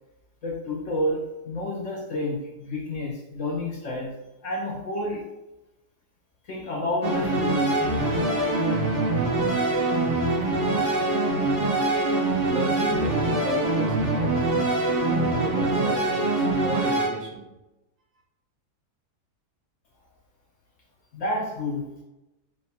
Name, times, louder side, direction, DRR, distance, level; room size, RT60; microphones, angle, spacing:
voice 1, 0.4-4.1 4.4-5.3 6.4-8.1 21.1-21.9, left 1 dB, 65° left, -2 dB, 0.8 m, -30 dB
sound 1, 7.0-17.1, right 2 dB, 90° right, 1.6 m, -24 dB
voice 2, 12.5-14.5 15.0-17.5, right 3 dB, 60° right, -1 dB, 1.0 m, -34 dB
4.3 x 2.1 x 4.1 m, 0.96 s
omnidirectional pair, 1.8 m